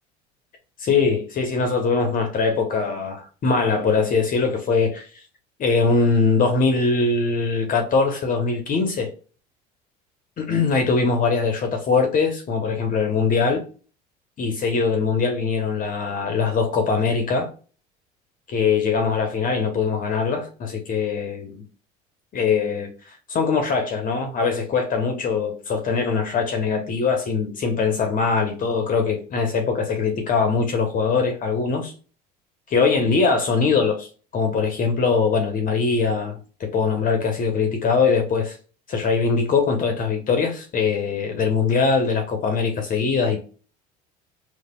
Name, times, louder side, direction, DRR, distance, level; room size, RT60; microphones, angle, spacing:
voice 1, 0.8-5.1 5.6-9.1 10.4-13.6 14.4-17.5 18.5-21.6 22.3-31.9 32.7-34.1 34.3-38.5 38.9-43.4, left 4 dB, 45° left, 1.0 m, -22 dB
4.2 x 2.4 x 2.3 m
supercardioid pair, 85°, 20 cm